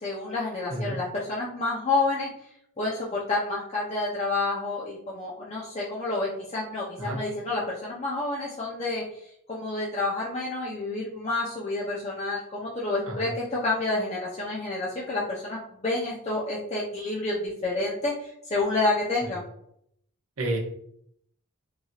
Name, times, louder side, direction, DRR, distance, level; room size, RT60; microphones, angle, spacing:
voice 1, 0.0-2.3 2.8-9.0 9.5-19.4, left 2 dB, 30° left, -5 dB, 0.5 m, -29 dB
voice 2, 13.1-13.4 19.2-19.3 20.4-20.6, right 1 dB, 70° right, -1 dB, 0.8 m, -31 dB
3.1 x 2.6 x 2.3 m, 0.72 s
head